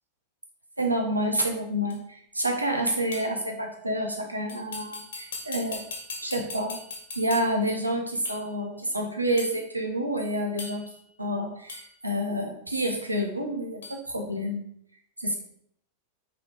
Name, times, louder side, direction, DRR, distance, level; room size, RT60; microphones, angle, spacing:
voice 1, 0.8-5.8 6.2-6.8 7.1-10.8 11.2-14.6 15.2-15.4, right 1 dB, 85° right, 2 dB, 1.1 m, -28 dB
sound 1, 1.9-2.0 3.1-3.4 4.5-7.7 8.2-8.5 9.4-9.6 10.6-11.0 11.7-11.9 12.8-13.0 13.8-14.0, left 3 dB, 65° left, 1.9 m, -39 dB
5.4 x 5.1 x 4.8 m, 0.68 s
figure-of-eight pair, 90°, 0 cm